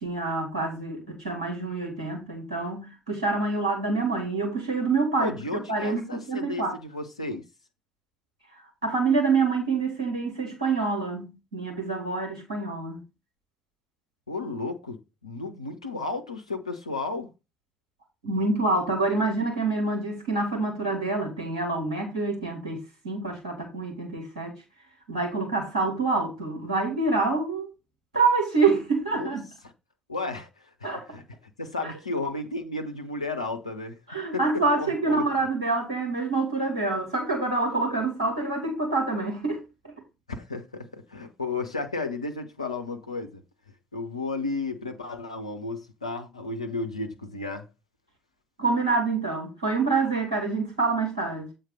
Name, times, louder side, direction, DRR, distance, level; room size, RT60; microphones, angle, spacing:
voice 1, 0.0-6.7 8.8-13.0 18.2-22.8 23.0-24.5 25.1-27.7 28.1-29.4 30.8-31.0 31.8-31.9 34.1-39.9 48.6-51.5, right 3 dB, 85° right, 1.7 m, -26 dB
voice 2, 5.2-7.4 14.3-17.3 29.2-29.3 30.1-30.5 30.8-31.2 31.6-34.0 34.3-35.3 40.3-43.4 43.9-47.7, left 3 dB, 90° left, 0.6 m, -33 dB
8.0 x 3.9 x 5.3 m
figure-of-eight pair, 40°, 3 cm